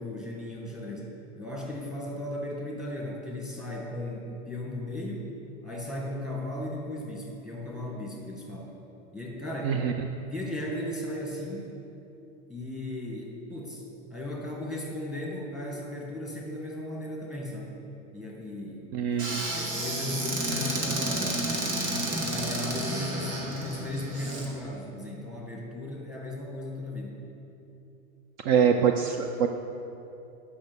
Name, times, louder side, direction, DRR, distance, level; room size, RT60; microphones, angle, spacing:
voice 1, 0.0-5.2 5.6-8.8 9.1-9.8 10.3-11.8 12.5-13.8 14.1-17.7 18.1-19.2 19.5-21.4 22.1-27.2, left 1 dB, ahead, -2 dB, 1.4 m, -36 dB
voice 2, 18.9-19.4 28.4-29.5, right 7 dB, 50° right, 6 dB, 0.5 m, -24 dB
Squeak / Cupboard open or close, 19.2-24.5, right 1 dB, 85° right, 2.4 m, -31 dB
8.5 x 5.8 x 6.7 m, 2.9 s
supercardioid pair, 150°, 41 cm